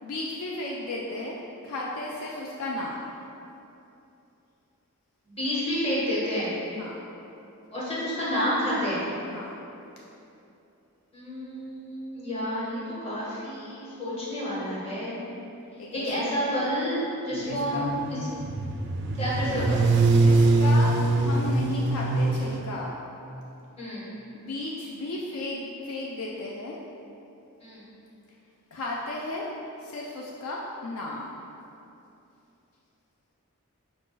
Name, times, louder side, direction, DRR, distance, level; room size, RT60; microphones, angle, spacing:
voice 1, 0.0-1.3 1.6-3.1 6.7-7.0 9.3-9.6 15.8-16.3 17.4-18.1 20.1-22.9 24.3-26.7 28.7-29.5 29.8-31.4, left 2 dB, 65° left, -3 dB, 0.4 m, -34 dB
voice 2, 5.3-6.5 7.7-9.1 11.1-15.1 15.9-17.0 17.2-17.9 19.2-19.8 23.8-24.1 27.6-27.9, equal, 25° left, -8 dB, 1.2 m, -29 dB
sound 1, 17.5-22.6, right 2 dB, 50° right, 0.3 m, -23 dB
4.9 x 2.5 x 3.7 m, 2.8 s
head